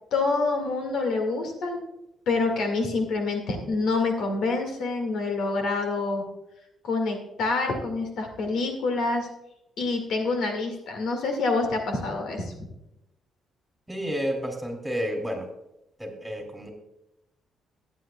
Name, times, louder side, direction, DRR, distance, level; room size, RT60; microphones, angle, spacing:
voice 1, 0.1-1.8 2.3-6.3 6.8-9.3 9.8-12.7, left 3 dB, 75° left, 4 dB, 2.0 m, -27 dB
voice 2, 13.9-15.5 16.0-16.7, equal, 5° right, 2 dB, 3.0 m, -30 dB
15.5 x 9.6 x 2.3 m, 0.88 s
cardioid pair, 90°, 0 cm